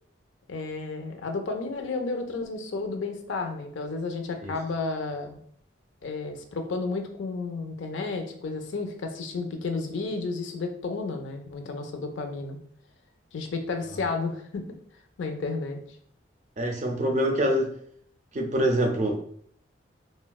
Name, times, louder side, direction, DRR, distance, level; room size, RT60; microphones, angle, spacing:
voice 1, 0.5-5.4 6.0-12.6 13.3-14.7 15.2-15.8, left 3 dB, 90° left, 5 dB, 0.5 m, -32 dB
voice 2, 16.6-17.8 18.3-19.2, right 1 dB, 40° right, 3 dB, 0.4 m, -25 dB
3.3 x 2.2 x 2.3 m, 0.62 s
head